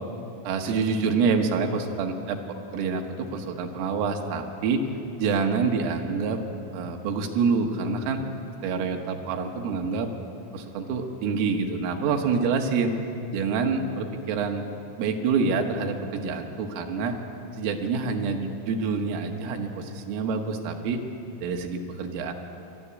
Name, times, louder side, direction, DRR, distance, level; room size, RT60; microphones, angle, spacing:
voice 1, 0.5-2.4 2.7-4.8 5.2-6.4 6.7-8.2 8.6-10.1 10.5-12.9 13.3-14.7 15.0-17.2 17.5-21.0 21.4-22.3, right 5 dB, 80° right, 4 dB, 3.9 m, -27 dB
20.5 x 13.0 x 9.8 m, 2.8 s
omnidirectional pair, 5.8 m